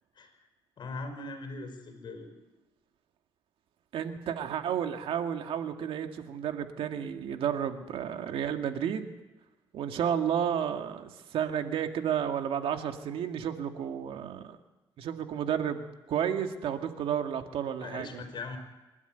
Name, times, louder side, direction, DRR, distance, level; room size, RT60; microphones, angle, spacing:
voice 1, 0.8-2.3 17.8-18.6, left 3 dB, 55° left, 6 dB, 5.0 m, -40 dB
voice 2, 3.9-9.1 9.7-14.6 15.0-18.3, right 8 dB, 75° right, 6 dB, 2.0 m, -32 dB
26.5 x 12.0 x 9.1 m, 1.1 s
cardioid pair, 90°, 9 cm